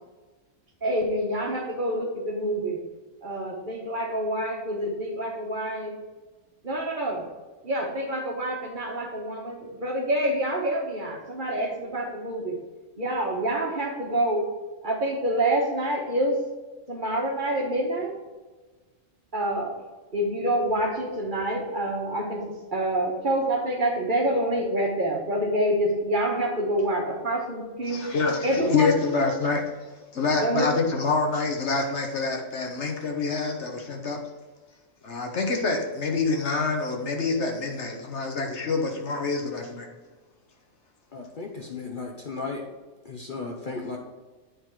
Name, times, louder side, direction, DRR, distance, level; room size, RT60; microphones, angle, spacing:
voice 1, 0.8-2.8 3.2-5.9 6.6-7.3 7.6-12.6 13.0-14.5 14.8-16.4 16.9-18.2 19.3-19.7 20.1-28.1 28.4-29.0 30.4-30.7, right 1 dB, 40° right, 0 dB, 1.3 m, -27 dB
voice 2, 27.9-34.2 35.0-39.9 41.8-41.9, left 4 dB, 60° left, 2 dB, 1.4 m, -26 dB
voice 3, 41.1-42.6 43.0-44.0, left 3 dB, 45° left, 0 dB, 0.9 m, -35 dB
9.5 x 3.9 x 4.7 m, 1.2 s
omnidirectional pair, 1.4 m